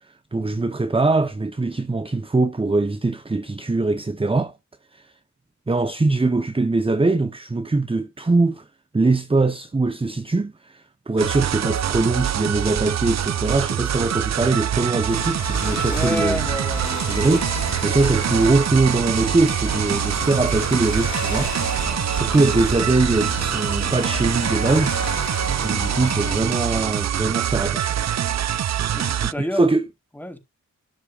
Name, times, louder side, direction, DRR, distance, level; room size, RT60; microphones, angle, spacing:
voice 1, 0.0-4.5 4.9-5.1 5.7-8.7 8.9-16.4 17.1-21.5 22.1-28.0 29.1-29.8, right 3 dB, 20° right, 1.1 m, -22 dB
sound 1, 11.2-29.3, right 10 dB, 60° right, 0.7 m, -24 dB
Ocean / Boat Water vehicle, 15.1-26.4, left 6 dB, 70° left, 2.4 m, -33 dB
voice 2, 15.9-17.3 28.9-29.7 30.1-30.4, left 1 dB, 5° left, 3.9 m, -29 dB
13.0 x 10.5 x 2.6 m
cardioid pair, 85°, 30 cm